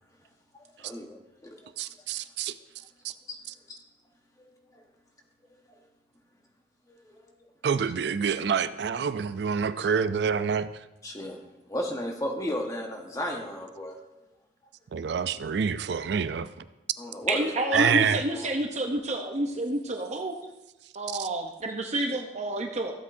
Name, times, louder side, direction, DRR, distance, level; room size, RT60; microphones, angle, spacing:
voice 1, 0.8-1.6 3.3-3.4 3.7-3.8 4.7-4.8 6.9-7.2 11.0-11.4 11.7-14.0 17.0-18.5, left 1 dB, 20° left, 2 dB, 1.2 m, -34 dB
voice 2, 1.8-2.6 3.0-3.1 7.6-10.7 14.9-16.5 17.7-18.2 21.2-21.3, right 6 dB, 65° right, 13 dB, 0.4 m, -27 dB
voice 3, 17.3-20.3 20.9-22.9, right 1 dB, 40° right, 3 dB, 0.7 m, -29 dB
14.5 x 8.2 x 2.6 m, 0.99 s
head